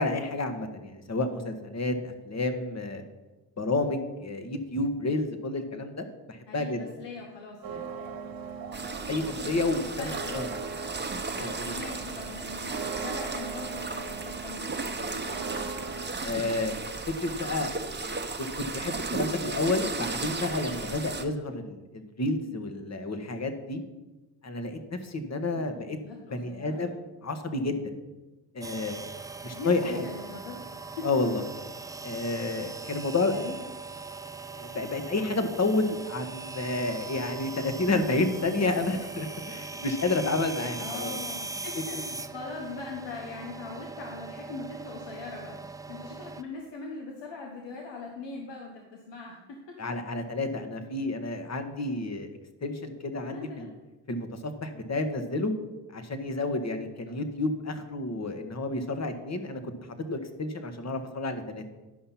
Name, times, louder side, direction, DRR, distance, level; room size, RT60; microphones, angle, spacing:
voice 1, 0.0-3.0 3.6-6.8 9.1-10.5 11.4-11.8 16.2-16.8 17.2-17.7 18.0-23.8 24.4-26.0 26.3-27.8 28.5-29.0 29.4-30.1 31.0-31.4 32.0-33.4 34.6-41.2 49.8-52.3 52.6-53.7 54.1-55.5 55.9-59.6 60.1-61.6, left 2 dB, 35° left, 8 dB, 1.5 m, -30 dB
voice 2, 6.5-7.9 10.0-10.5 11.6-15.6 25.5-26.9 29.5-31.1 33.3-33.6 40.8-49.8 53.2-53.7 57.1-57.2, left 3 dB, 75° left, 0 dB, 1.4 m, -41 dB
sound 1, 7.6-16.1, right 5 dB, 55° right, 1.3 m, -39 dB
sound 2, 8.7-21.2, right 3 dB, 25° right, 1.2 m, -35 dB
sound 3, 28.6-46.4, right 3 dB, 10° right, 0.4 m, -40 dB
11.0 x 5.6 x 5.8 m, 1.1 s
supercardioid pair, 55°, 44 cm